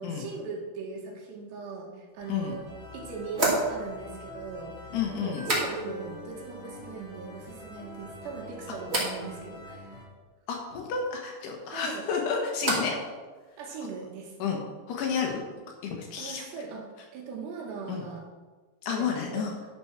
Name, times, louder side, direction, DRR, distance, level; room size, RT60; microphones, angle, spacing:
voice 1, 0.0-2.7 2.9-10.0 11.7-12.1 13.6-14.4 16.2-16.9 17.1-18.3 18.9-19.7, right 4 dB, 70° right, 0 dB, 3.5 m, -39 dB
sound 1, 2.1-2.2 3.3-6.2 6.4-7.0 7.4-8.0 8.8-9.2 11.6-13.1 13.3-13.9, right 2 dB, 20° right, 1.9 m, -33 dB
sound 2, 2.2-10.1, left 2 dB, 15° left, 2.6 m, -45 dB
voice 2, 4.9-5.4 10.5-13.0 14.4-14.6 14.9-15.4 15.8-16.4 17.9-18.0 18.8-19.6, left 6 dB, 70° left, 1 dB, 3.1 m, -30 dB
11.5 x 7.0 x 6.1 m, 1.3 s
omnidirectional pair, 5.5 m